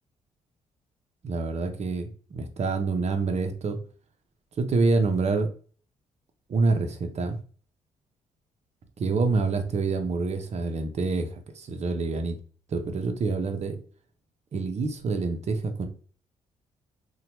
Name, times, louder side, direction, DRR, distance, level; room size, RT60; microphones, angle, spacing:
voice 1, 1.2-3.8 4.6-5.5 6.5-7.4 9.0-12.4 12.7-13.8 14.5-15.9, right 3 dB, 50° right, 7 dB, 0.6 m, -27 dB
2.8 x 2.2 x 2.8 m, 0.42 s
supercardioid pair, 50°, 15 cm